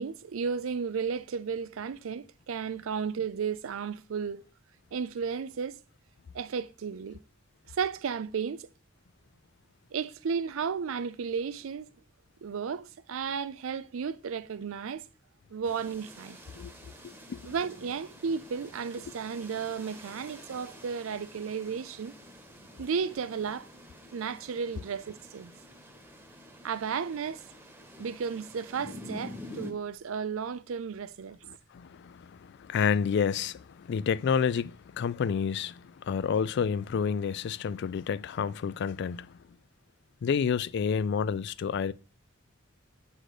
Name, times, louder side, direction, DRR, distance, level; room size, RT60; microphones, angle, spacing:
voice 1, 0.0-4.4 4.9-5.8 6.3-7.2 7.7-8.7 9.9-11.9 12.4-15.0 15.5-16.4 17.4-22.1 22.8-23.7 24.1-25.5 26.6-27.4 28.0-31.4, right 6 dB, 75° right, 0.4 m, -33 dB
sound 1, 15.6-29.7, left 1 dB, 10° right, 1.1 m, -48 dB
voice 2, 31.5-39.4 40.2-41.9, left 6 dB, 55° left, 0.3 m, -29 dB
7.8 x 4.1 x 4.9 m
head